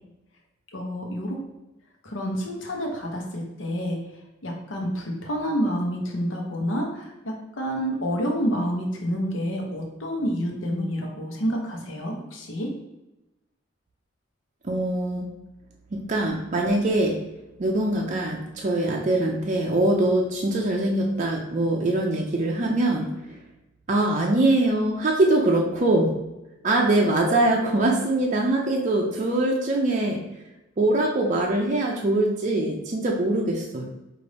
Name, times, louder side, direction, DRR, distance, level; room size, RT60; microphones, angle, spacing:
voice 1, 0.7-1.4 2.0-4.0 4.4-12.7, equal, 75° left, 1 dB, 0.9 m, -28 dB
voice 2, 14.6-15.3 15.9-17.2 17.6-23.4 23.9-26.1 26.6-30.2 30.8-33.9, right 2 dB, 40° right, -1 dB, 0.5 m, -23 dB
5.1 x 2.5 x 3.3 m, 0.96 s
head